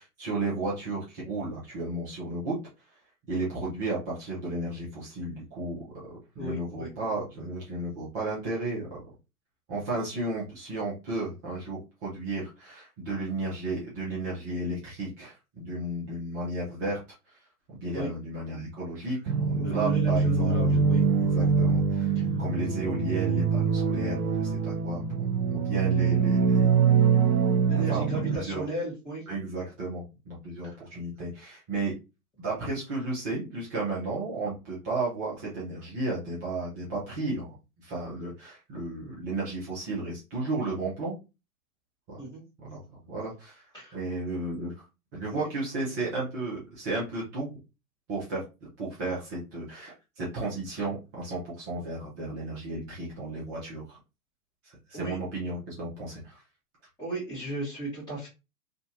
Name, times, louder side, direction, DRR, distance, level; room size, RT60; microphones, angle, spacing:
voice 1, 0.0-2.6 2.9-3.0 3.3-9.0 9.7-17.0 17.3-17.4 17.7-26.8 27.7-28.7 29.3-31.9 32.4-41.2 42.1-42.2 42.6-43.6 43.9-44.7 45.1-47.5 48.1-48.4 48.8-54.0 54.6-56.4, right 2 dB, 15° right, -7 dB, 0.3 m, -33 dB
voice 2, 6.4-6.9 17.9-18.1 19.6-21.0 27.6-29.2 30.6-30.7 42.2-42.4 43.7-44.0 45.3-45.5 54.9-55.2 57.0-58.3, right 1 dB, 10° left, -9 dB, 1.2 m, -35 dB
sound 1, 19.3-28.4, right 5 dB, 75° right, 0.6 m, -24 dB
2.5 x 2.5 x 2.6 m, 0.28 s
hypercardioid pair, 115°, 45 cm